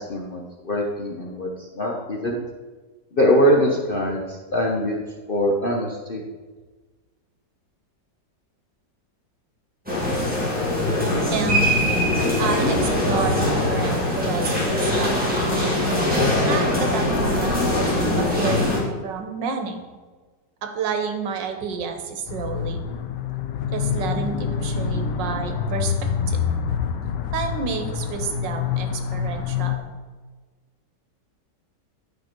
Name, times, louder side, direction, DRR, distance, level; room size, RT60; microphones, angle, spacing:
voice 1, 0.0-2.4 3.1-5.0 5.3-6.2, equal, 45° left, -2 dB, 0.7 m, -22 dB
sound 1, 9.9-18.8, left 1 dB, 5° right, 2.5 m, -22 dB
voice 2, 11.3-11.7 12.4-15.8 16.4-19.8 20.6-22.8 23.7-26.4 27.3-29.9, right 5 dB, 85° right, 5 dB, 1.6 m, -30 dB
sound 2, 22.3-29.8, left 7 dB, 80° left, 1.3 m, -26 dB
10.0 x 5.2 x 4.4 m, 1.3 s
omnidirectional pair, 1.9 m